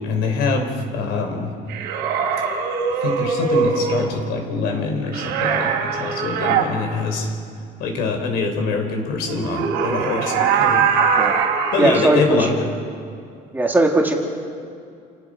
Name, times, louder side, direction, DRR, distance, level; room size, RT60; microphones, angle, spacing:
voice 1, 0.0-1.5 3.0-7.3 7.8-10.9 11.7-12.5, left 4 dB, 75° left, 3 dB, 4.2 m, -24 dB
sound 1, 1.7-4.1 5.1-6.7 9.2-12.2, right 6 dB, 90° right, 3.5 m, -21 dB
voice 2, 11.8-12.5 13.5-14.1, right 2 dB, 10° right, 1 dB, 1.9 m, -18 dB
29.0 x 18.5 x 5.0 m, 2.4 s
cardioid pair, 160°, 16 cm